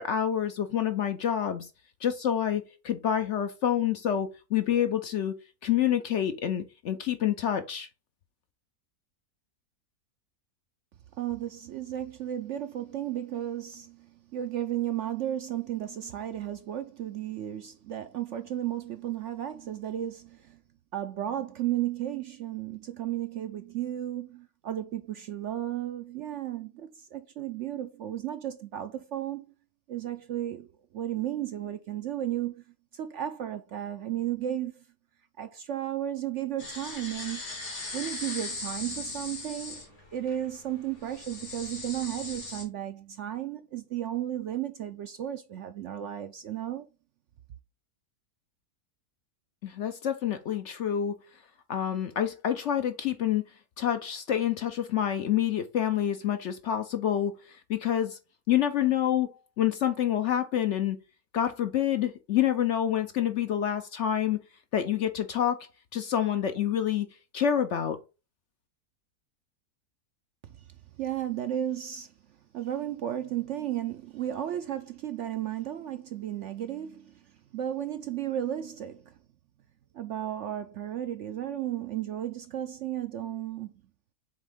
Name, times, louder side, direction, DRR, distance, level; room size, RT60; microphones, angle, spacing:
voice 1, 0.0-1.7 2.0-5.3 5.6-7.9 49.6-51.2 51.7-53.5 53.8-58.2 58.5-61.0 61.3-64.4 64.7-65.6 65.9-67.1 67.3-68.0, left 10 dB, 60° left, 0.8 m, -27 dB
voice 2, 11.2-20.6 20.9-29.4 29.9-32.6 32.9-34.8 35.4-37.4 37.9-46.9 70.4-70.6 71.0-72.1 72.5-77.3 77.5-79.2 79.9-83.7, right 11 dB, 65° right, 0.7 m, -34 dB
sound 1, 36.6-42.6, left 3 dB, 80° left, 2.8 m, -39 dB
7.5 x 3.5 x 3.6 m
omnidirectional pair, 1.6 m